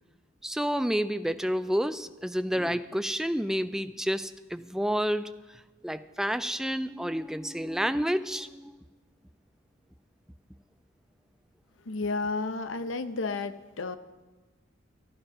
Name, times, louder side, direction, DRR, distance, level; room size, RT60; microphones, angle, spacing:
voice 1, 0.4-5.4 5.8-8.8, equal, 5° right, 12 dB, 0.4 m, -29 dB
voice 2, 11.9-14.0, left 3 dB, 85° left, 13 dB, 0.7 m, -32 dB
12.5 x 11.5 x 6.1 m, 1.2 s
head